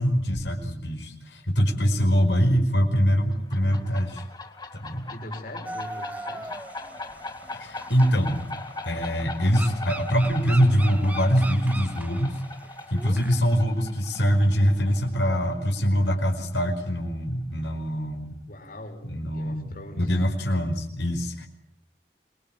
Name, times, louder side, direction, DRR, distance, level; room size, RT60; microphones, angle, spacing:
voice 1, 0.0-4.3 4.7-5.1 7.5-8.4 8.9-12.4 12.9-18.3 19.1-19.7 20.0-21.5, equal, 80° left, 3 dB, 5.2 m, -23 dB
sound 1, 3.3-16.7, left 2 dB, 25° left, 3.3 m, -40 dB
voice 2, 5.1-6.5 18.5-19.0 19.3-20.1, left 1 dB, 50° left, 3 dB, 5.2 m, -41 dB
sound 2, 5.6-13.4, right 2 dB, 10° right, 1.2 m, -40 dB
27.0 x 22.0 x 9.0 m, 0.74 s
head